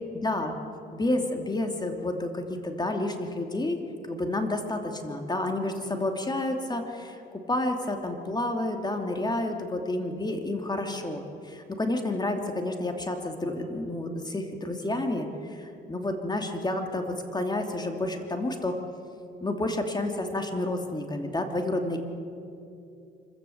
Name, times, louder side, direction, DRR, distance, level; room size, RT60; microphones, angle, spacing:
voice 1, 0.1-0.6 0.9-3.8 4.1-7.2 7.5-18.8 19.4-22.0, left 2 dB, 20° left, 4 dB, 2.8 m, -30 dB
25.0 x 15.0 x 8.0 m, 2.6 s
cardioid pair, 90°, 20 cm